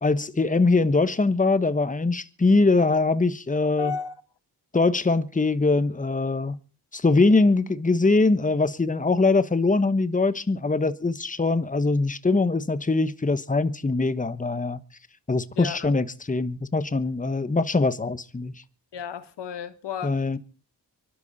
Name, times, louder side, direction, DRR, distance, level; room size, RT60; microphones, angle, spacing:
voice 1, 0.0-3.9 4.7-6.6 6.9-14.8 15.3-18.5 20.0-20.4, left 3 dB, 20° left, 1.2 m, -22 dB
voice 2, 3.8-4.1 15.5-15.9 18.9-20.4, left 7 dB, 85° left, 1.4 m, -33 dB
24.0 x 12.0 x 4.2 m
cardioid pair, 60°, 41 cm